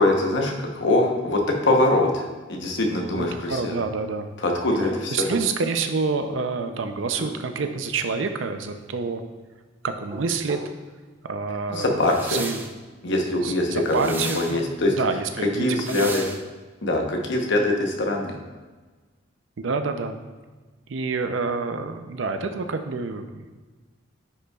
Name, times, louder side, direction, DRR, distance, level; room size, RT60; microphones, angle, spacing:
voice 1, 0.0-3.8 4.4-5.3 11.7-12.4 13.0-14.9 15.6-16.2 16.8-18.4, left 2 dB, 60° left, 1 dB, 0.9 m, -23 dB
voice 2, 3.1-4.3 5.1-9.2 9.8-10.6 11.2-12.0 12.3-12.6 13.4-14.6 14.9-16.4 19.6-20.2 20.9-23.4, right 4 dB, 65° right, 7 dB, 0.5 m, -27 dB
sound 1, 4.6-5.5 7.0-7.8 9.9-10.7, left 1 dB, 35° right, 1.0 m, -35 dB
sound 2, 12.0-12.7 13.8-14.6 15.7-16.4, right 3 dB, 10° right, 0.3 m, -35 dB
10.0 x 5.4 x 2.4 m, 1.3 s
head